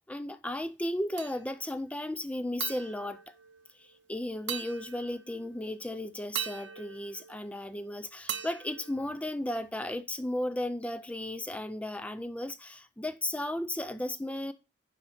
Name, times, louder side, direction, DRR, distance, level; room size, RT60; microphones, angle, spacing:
voice 1, 0.1-3.4 3.8-14.5, left 1 dB, 5° left, 0.4 m, -35 dB
sound 1, 1.2-1.8 2.6-4.0 4.5-5.5 6.3-7.8 8.3-9.7, right 9 dB, 65° right, 0.9 m, -41 dB
9.8 x 3.8 x 5.7 m
head